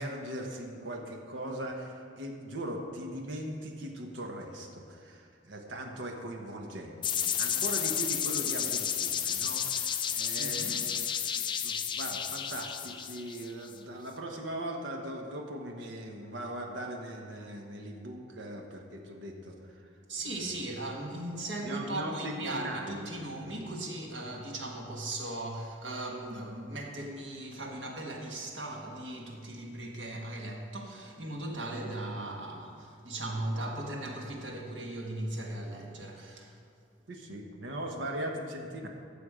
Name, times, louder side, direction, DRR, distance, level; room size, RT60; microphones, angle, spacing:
voice 1, 0.0-11.1 11.6-19.9 20.2-20.5 21.6-23.1 37.1-38.9, right 1 dB, 85° right, 2 dB, 1.2 m, -39 dB
sound 1, 7.0-13.7, left 8 dB, 25° left, 0.3 m, -32 dB
voice 2, 10.4-10.8 20.1-36.6, right 1 dB, 70° right, 1 dB, 1.5 m, -38 dB
12.5 x 7.0 x 5.0 m, 2.3 s
head